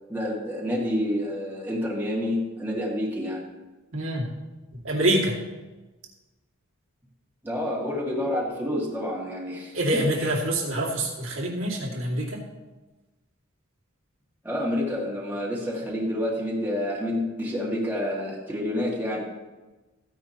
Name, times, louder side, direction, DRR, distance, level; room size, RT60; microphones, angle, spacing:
voice 1, 0.1-3.4 7.4-10.3 14.4-19.2, left 1 dB, 10° right, -5 dB, 2.0 m, -28 dB
voice 2, 3.9-4.3 4.8-5.4 9.7-12.4, right 1 dB, 70° right, -2 dB, 2.3 m, -25 dB
15.0 x 9.8 x 2.9 m, 1.2 s
head